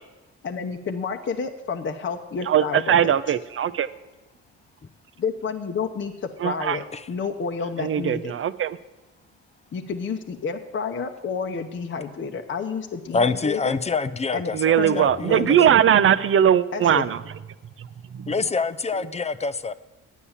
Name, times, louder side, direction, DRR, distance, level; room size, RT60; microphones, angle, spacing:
voice 1, 0.4-3.1 5.2-6.1 6.4-8.3 9.7-13.8 14.3-14.5 14.8-15.8 16.7-17.1, left 5 dB, 40° left, 5 dB, 0.8 m, -30 dB
voice 2, 2.5-3.9 6.4-6.8 7.8-8.8 14.5-17.2, right 9 dB, 45° right, 15 dB, 0.6 m, -20 dB
voice 3, 13.1-15.6 18.3-19.7, left 4 dB, 20° left, 14 dB, 0.5 m, -26 dB
9.8 x 8.2 x 7.2 m, 1.1 s
cardioid pair, 90°, 30 cm